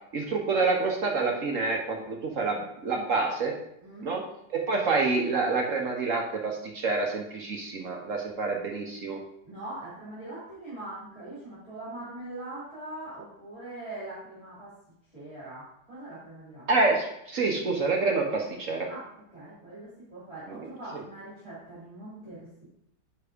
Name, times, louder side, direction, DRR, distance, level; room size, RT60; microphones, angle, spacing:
voice 1, 0.1-3.5 4.0-4.2 4.5-9.2 16.7-18.9, right 3 dB, 55° right, 1 dB, 1.1 m, -27 dB
voice 2, 3.8-4.1 9.4-14.7 15.1-16.7 18.9-19.1 19.3-22.6, right 2 dB, 15° right, -10 dB, 3.3 m, -42 dB
9.5 x 3.5 x 5.0 m, 0.77 s
omnidirectional pair, 1.9 m